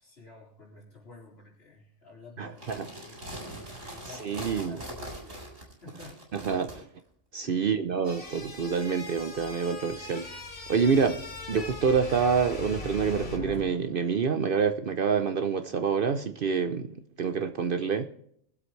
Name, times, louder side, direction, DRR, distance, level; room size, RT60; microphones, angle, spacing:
voice 1, 0.0-6.2 7.4-7.8, left 2 dB, 60° left, 4.4 m, -51 dB
voice 2, 2.4-2.8 4.2-4.8 6.5-6.8 7.3-10.3 10.7-11.2 11.5-18.1, right 6 dB, 55° right, 0.7 m, -27 dB
sound 1, 2.5-6.8, right 1 dB, 85° right, 4.8 m, -42 dB
sound 2, 8.0-13.4, left 2 dB, 85° left, 2.7 m, -42 dB
sound 3, 9.1-14.2, left 2 dB, 35° left, 1.0 m, -42 dB
22.0 x 7.9 x 3.2 m
omnidirectional pair, 1.2 m